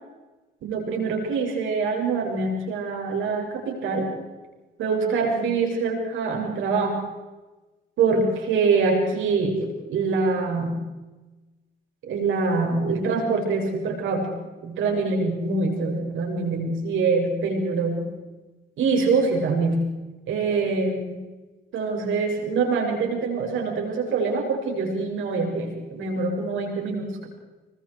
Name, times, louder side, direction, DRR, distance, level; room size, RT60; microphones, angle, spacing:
voice 1, 0.6-4.1 4.8-7.0 8.0-9.6 9.9-10.9 12.1-14.3 14.6-18.1 18.8-19.9 20.3-21.2 21.7-27.3, right 4 dB, 80° right, 1 dB, 6.7 m, -24 dB
26.0 x 24.0 x 4.8 m, 1.2 s
cardioid pair, 90°, 20 cm